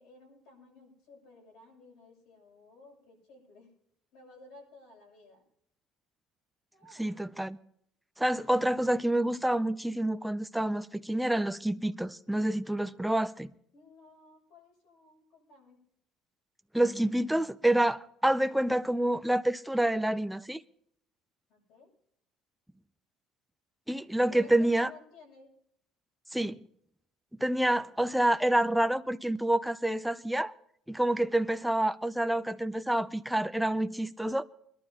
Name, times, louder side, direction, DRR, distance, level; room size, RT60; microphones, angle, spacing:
voice 1, 0.0-3.7 4.1-5.4 6.7-7.3 13.7-15.8 21.5-21.9 24.3-25.5, left 3 dB, 70° left, 7.1 m, -54 dB
voice 2, 7.0-7.6 8.2-13.5 16.7-20.6 23.9-24.9 26.3-26.6 27.4-30.5 30.9-34.4, right 1 dB, ahead, 0.4 m, -28 dB
23.5 x 12.0 x 2.8 m
cardioid pair, 180°, 0 cm